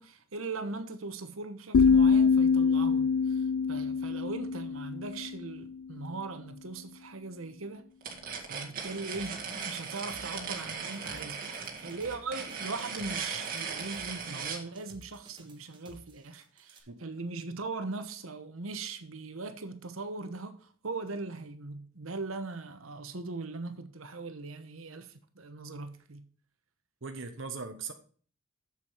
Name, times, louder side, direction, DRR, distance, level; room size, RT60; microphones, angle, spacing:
voice 1, 0.0-7.9 8.5-26.3, right 3 dB, 85° right, 1.1 m, -40 dB
sound 1, 1.7-5.6, left 5 dB, 80° left, 0.3 m, -24 dB
sound 2, 8.0-14.6, right 5 dB, 45° right, 1.9 m, -38 dB
sound 3, 9.1-16.8, right 2 dB, 25° right, 1.4 m, -54 dB
voice 2, 27.0-27.9, right 4 dB, 65° right, 0.9 m, -39 dB
7.4 x 7.2 x 5.0 m
head